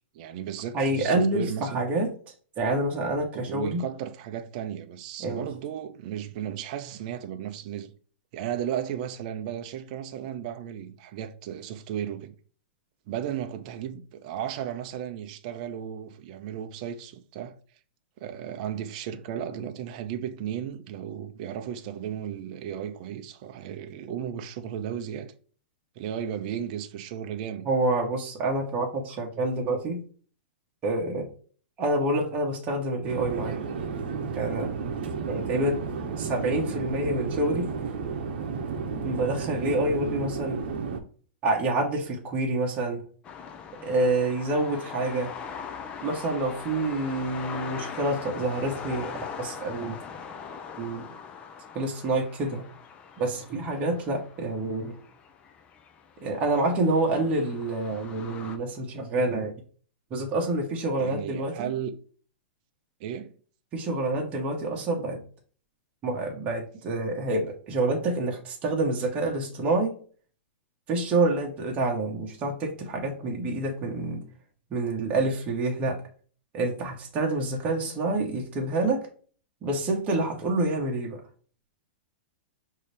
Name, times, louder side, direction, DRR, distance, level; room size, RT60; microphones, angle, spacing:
voice 1, 0.1-1.8 3.3-7.9 8.3-12.3 13.1-17.5 18.2-25.3 26.0-27.7 61.0-61.9 63.0-63.3, right 9 dB, 40° right, 0.5 m, -35 dB
voice 2, 0.7-2.1 2.6-3.8 5.2-5.5 27.6-30.0 30.8-31.3 31.8-33.6 34.4-34.7 35.3-35.8 36.2-37.7 39.0-40.6 41.4-43.0 43.8-45.3 46.0-49.1 49.4-50.0 50.8-51.1 51.7-52.7 53.2-55.0 56.2-59.5 60.1-61.7 63.7-65.2 66.0-70.0 70.9-74.2 74.7-76.0 76.5-79.1 79.6-81.2, right 2 dB, 25° right, 1.1 m, -27 dB
Conversation / Chatter / Fixed-wing aircraft airplane, 33.0-41.0, right 5 dB, 60° right, 0.9 m, -32 dB
sound 1, 43.2-58.6, left 6 dB, 20° left, 0.4 m, -41 dB
5.6 x 2.8 x 3.3 m
supercardioid pair, 160°, 6 cm